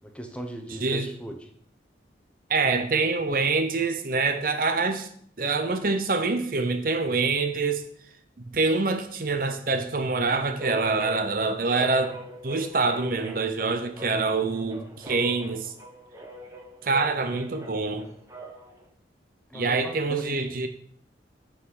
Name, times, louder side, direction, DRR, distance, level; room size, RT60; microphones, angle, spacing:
voice 1, 0.0-1.5 19.5-20.5, equal, 5° left, 4 dB, 1.0 m, -38 dB
voice 2, 2.5-5.1 5.4-7.8 8.4-12.2 12.4-15.7 16.8-18.1 19.5-20.7, right 3 dB, 50° right, 8 dB, 0.8 m, -25 dB
sound 1, 10.6-18.8, right 1 dB, 15° right, 1.4 m, -41 dB
8.2 x 6.2 x 5.7 m, 0.63 s
head